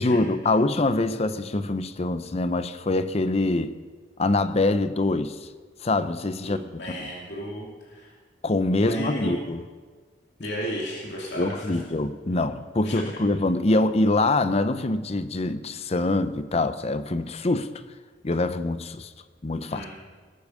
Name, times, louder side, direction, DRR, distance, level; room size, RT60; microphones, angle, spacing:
voice 1, 0.0-3.8 4.2-5.4 5.8-6.8 8.4-9.6 11.4-17.7 18.2-19.1 19.4-19.8, left 2 dB, 35° left, 0.7 m, -24 dB
voice 2, 6.4-8.1 8.8-9.4 10.4-11.7 12.8-13.0 19.7-19.9, equal, 65° left, 2.8 m, -33 dB
20.0 x 8.5 x 6.4 m
head